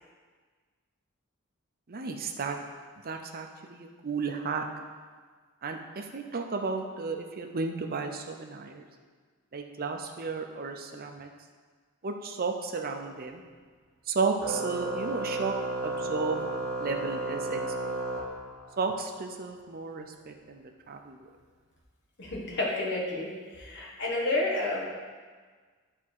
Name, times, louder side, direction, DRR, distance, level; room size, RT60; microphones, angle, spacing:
voice 1, 1.9-2.6 3.0-4.7 5.6-8.8 9.5-11.3 12.0-13.4 14.1-15.5 15.8-16.5 16.8-17.6 17.9-18.0 18.8-21.2, right 4 dB, 45° right, 4 dB, 0.6 m, -33 dB
Organ, 14.4-18.9, right 2 dB, 90° right, 0.7 m, -33 dB
voice 2, 22.2-24.9, left 2 dB, 55° left, -3 dB, 1.5 m, -30 dB
9.2 x 3.6 x 4.6 m, 1.5 s
head